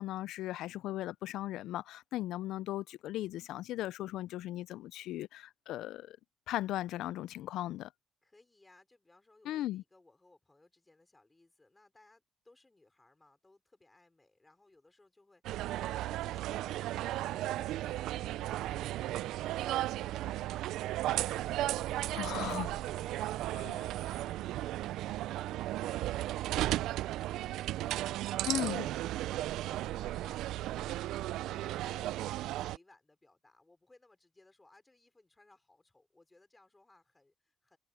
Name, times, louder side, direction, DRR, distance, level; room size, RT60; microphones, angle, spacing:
voice 1, 0.0-6.2 6.5-7.9 9.5-9.8 22.1-22.8 23.5-23.8 28.5-28.9, left 14 dB, 85° left, 0.4 m, -37 dB
voice 2, 8.2-22.2 22.8-28.5 28.8-29.1 29.5-32.3 32.6-37.8, left 2 dB, 15° left, 5.0 m, -64 dB
sound 1, 15.4-32.8, right 14 dB, 90° right, 0.3 m, -35 dB
cardioid pair, 135°, 0 cm